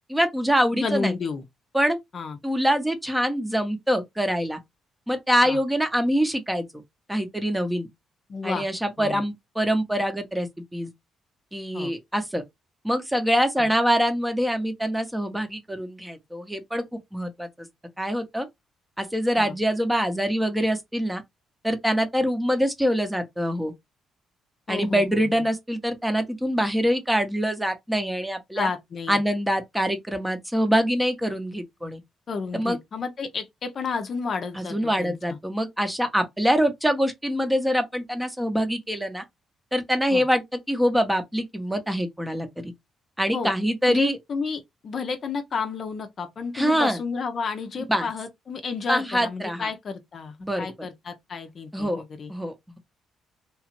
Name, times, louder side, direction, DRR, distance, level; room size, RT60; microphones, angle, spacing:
voice 1, 0.1-1.1 1.7-2.0 2.4-4.6 5.1-6.7 7.1-7.9 8.4-10.9 11.5-12.4 12.8-17.7 18.0-18.5 19.0-21.2 21.6-23.7 24.7-28.7 29.1-32.0 32.5-32.8 34.5-39.2 39.7-42.7 43.2-44.2 46.5-47.0 47.9-48.1 48.9-49.7 50.4-50.7 51.7-52.0 52.3-52.8, equal, 5° right, 0.7 m, -24 dB
voice 2, 0.7-1.4 2.1-2.4 5.4-5.6 8.3-8.6 9.0-9.2 11.7-11.9 13.6-13.7 19.4-19.5 24.7-25.4 28.5-29.2 32.3-35.4 40.1-40.2 43.3-43.5 43.9-52.3, left 5 dB, 50° left, 0.6 m, -31 dB
2.9 x 2.4 x 2.9 m
cardioid pair, 90°, 0 cm